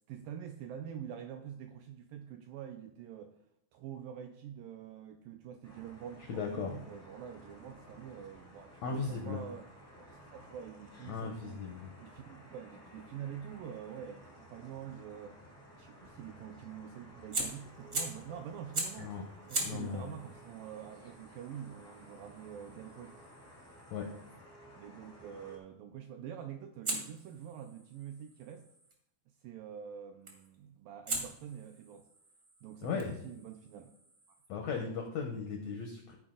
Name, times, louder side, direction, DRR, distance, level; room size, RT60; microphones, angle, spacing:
voice 1, 0.1-3.4 3.7-9.7 10.0-11.6 12.0-15.4 15.8-19.1 19.5-23.2 24.8-28.7 29.4-32.1 32.6-33.9, right 9 dB, 85° right, 5 dB, 2.0 m, -46 dB
sound 1, 5.6-25.6, equal, 20° left, 0.4 m, -55 dB
voice 2, 6.3-6.8 8.8-9.4 11.1-11.9 19.0-19.2 19.6-20.1 23.9-24.1 32.8-33.2 34.5-36.1, left 5 dB, 85° left, 2 dB, 1.5 m, -37 dB
Fire, 17.3-18.3 18.7-19.1 19.5-24.4 26.8-28.9 30.3-30.6 31.1-34.5, right 2 dB, 55° right, 0.8 m, -42 dB
14.0 x 4.8 x 3.8 m, 0.72 s
omnidirectional pair, 4.5 m